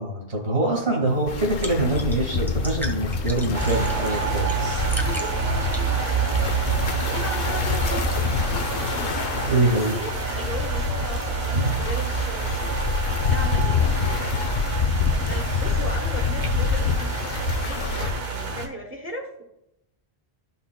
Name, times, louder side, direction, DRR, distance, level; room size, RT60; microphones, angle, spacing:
voice 1, 0.0-4.8 9.5-9.9 11.5-11.6, right 2 dB, 90° right, -3 dB, 2.1 m, -24 dB
sound 1, 1.1-6.9, left 1 dB, ahead, 1.1 m, -38 dB
sound 2, 1.3-18.1, left 6 dB, 55° left, 0.7 m, -27 dB
sound 3, 3.5-18.7, right 6 dB, 70° right, 1.3 m, -28 dB
voice 2, 5.0-6.4 7.1-8.4 9.4-12.7 13.3-14.2 15.0-17.3 17.6-18.1 18.3-19.4, right 1 dB, 15° right, 1 dB, 0.8 m, -37 dB
13.0 x 5.6 x 2.2 m, 0.84 s
omnidirectional pair, 1.1 m